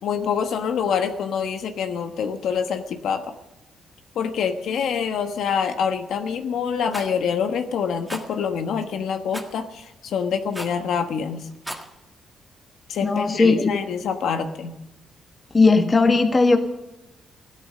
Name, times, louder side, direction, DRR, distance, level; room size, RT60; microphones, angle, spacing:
voice 1, 0.0-3.3 4.1-11.5 12.9-14.7, left 7 dB, 80° left, 6 dB, 1.2 m, -26 dB
Rattle, 6.9-7.1 8.1-8.3 9.3-9.5 10.5-10.8 11.5-11.9, right 1 dB, 5° right, 1.8 m, -34 dB
voice 2, 13.0-13.8 15.5-16.6, left 3 dB, 25° left, 6 dB, 1.7 m, -17 dB
16.5 x 12.5 x 6.7 m, 0.99 s
cardioid pair, 120°, 0 cm